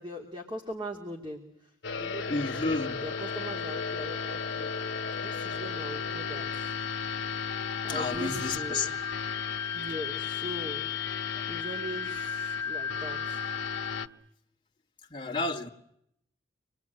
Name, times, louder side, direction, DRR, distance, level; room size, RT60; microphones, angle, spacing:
voice 1, 0.0-4.7 5.2-6.7 7.8-9.0 9.7-10.8 11.5-13.4, equal, 25° right, 2.7 m, -41 dB
sound 1, 1.8-14.1, left 6 dB, 75° left, 1.3 m, -34 dB
voice 2, 2.3-3.0 7.9-8.9 15.1-15.7, left 3 dB, 25° left, 2.4 m, -31 dB
27.0 x 21.5 x 9.2 m
head